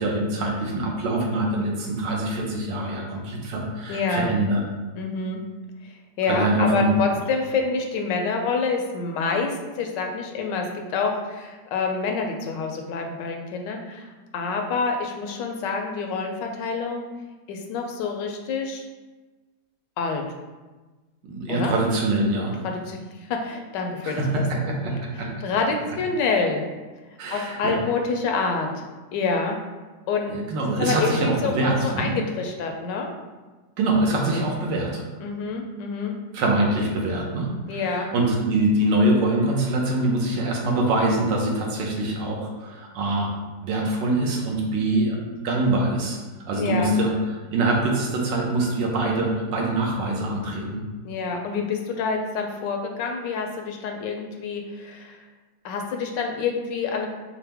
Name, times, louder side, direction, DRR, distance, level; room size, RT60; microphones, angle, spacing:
voice 1, 0.0-4.6 6.3-7.0 21.2-22.6 24.0-25.3 27.2-27.8 30.3-32.1 33.8-35.0 36.3-43.3 43.6-45.2 45.4-46.2 46.5-50.8, right 2 dB, 80° right, -1 dB, 1.4 m, -24 dB
voice 2, 3.9-4.3 5.0-5.4 6.2-14.0 14.3-17.1 17.5-18.8 20.0-20.2 21.5-21.7 22.6-24.2 24.8-24.9 25.4-26.7 27.3-28.7 29.1-29.6 30.1-33.1 35.2-36.2 37.7-38.1 46.6-46.9 51.0-55.2 55.6-57.1, left 4 dB, 80° left, 3 dB, 1.2 m, -27 dB
5.4 x 2.1 x 3.4 m, 1.2 s
omnidirectional pair, 1.9 m